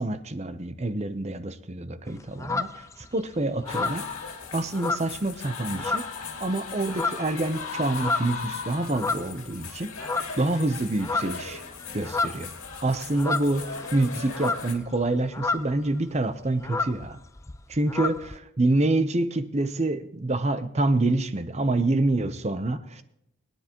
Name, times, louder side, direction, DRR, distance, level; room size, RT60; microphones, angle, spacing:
voice 1, 0.0-4.0 4.5-11.6 11.9-12.5 12.8-17.2 17.7-18.2 18.6-23.0, right 2 dB, 30° right, 11 dB, 0.7 m, -27 dB
sound 1, 2.1-3.2 3.6-5.5 5.7-6.3 6.7-9.6 10.0-10.6 10.8-15.9 16.2-16.3 16.5-18.4, left 3 dB, 15° left, 0.4 m, -31 dB
sound 2, 3.7-14.8, left 5 dB, 80° left, 2.3 m, -38 dB
22.0 x 10.0 x 3.0 m, 0.84 s
head